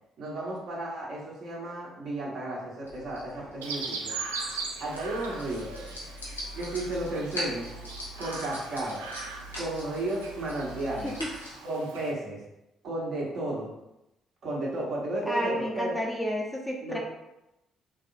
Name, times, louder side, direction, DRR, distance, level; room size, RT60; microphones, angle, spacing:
voice 1, 0.2-4.2 4.8-5.7 6.5-7.6 8.2-9.0 9.5-11.1 11.6-12.4 12.8-13.7 14.4-16.0 16.8-17.0, right 1 dB, 55° right, -5 dB, 1.3 m, -33 dB
sound 1, 2.8-11.6, equal, 85° left, 0.7 m, -41 dB
Chirp tweet, 3.6-12.1, right 4 dB, 75° right, 0.4 m, -40 dB
voice 2, 15.3-17.0, equal, 10° left, -1 dB, 0.8 m, -31 dB
3.8 x 3.3 x 2.6 m, 0.90 s
figure-of-eight pair, 45°, 0 cm